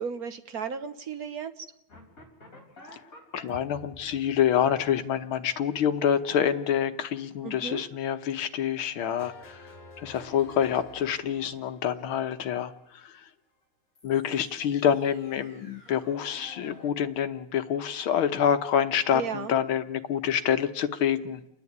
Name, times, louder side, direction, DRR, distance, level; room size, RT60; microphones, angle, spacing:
voice 1, 0.0-1.6 7.4-7.8 19.1-19.5, right 6 dB, 50° right, 9 dB, 1.3 m, -34 dB
sound 1, 1.9-6.0 9.2-12.9 14.0-16.9, left 1 dB, 40° left, 4.5 m, -51 dB
voice 2, 3.3-9.6 10.0-12.7 14.0-21.4, left 9 dB, 75° left, 10 dB, 1.8 m, -27 dB
30.0 x 10.5 x 9.5 m, 0.80 s
omnidirectional pair, 2.4 m